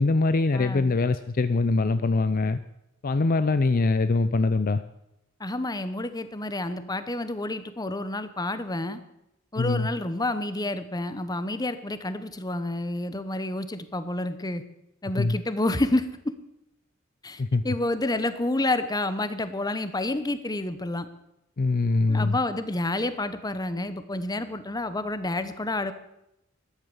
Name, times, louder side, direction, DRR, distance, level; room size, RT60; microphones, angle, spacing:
voice 1, 0.0-2.6 3.0-4.8 9.6-9.9 15.2-15.4 17.4-17.6 21.6-22.4, left 3 dB, 45° left, 12 dB, 0.5 m, -23 dB
voice 2, 0.5-0.9 5.4-9.0 9.5-14.6 15.0-16.3 17.2-21.1 22.1-25.9, left 2 dB, 20° left, 12 dB, 0.9 m, -29 dB
13.5 x 11.0 x 7.1 m, 0.83 s
head